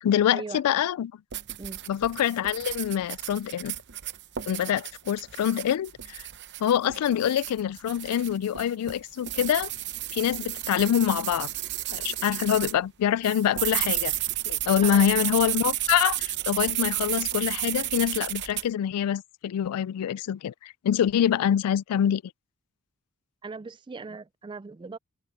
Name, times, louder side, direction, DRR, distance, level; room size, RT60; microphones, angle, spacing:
voice 1, 0.0-1.1 1.9-3.7 4.5-6.2 6.6-9.7 10.1-11.5 11.9-14.1 14.5-22.2, left 10 dB, 85° left, 0.3 m, -25 dB
sound 1, 1.3-12.8 13.2-18.7, right 14 dB, 50° right, 0.8 m, -32 dB
voice 2, 14.8-15.1 23.4-25.0, right 4 dB, 20° right, 0.3 m, -39 dB
head